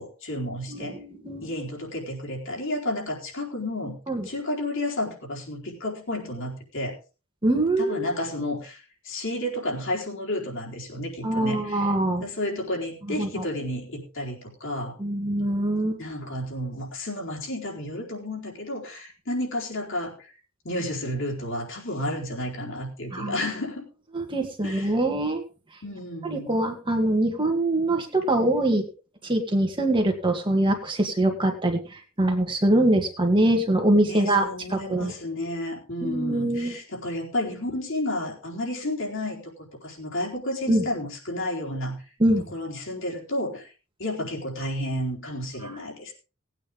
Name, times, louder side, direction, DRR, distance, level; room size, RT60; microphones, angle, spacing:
voice 1, 0.0-0.9 1.4-4.0 4.3-6.9 7.8-11.9 12.2-14.9 16.0-20.3 20.6-23.8 24.6-24.9 25.8-26.5 34.1-39.4 39.8-42.0 42.5-43.7 44.0-46.1, left 1 dB, 60° left, -2 dB, 4.3 m, -31 dB
voice 2, 0.7-1.5 4.1-4.3 7.4-8.1 11.2-12.2 13.2-13.4 15.0-16.0 23.1-23.3 24.1-25.4 26.2-28.8 29.2-35.1 36.0-36.7 40.7-40.8 42.2-42.4, right 1 dB, 20° right, 3 dB, 2.0 m, -23 dB
19.0 x 9.0 x 3.7 m, 0.33 s
head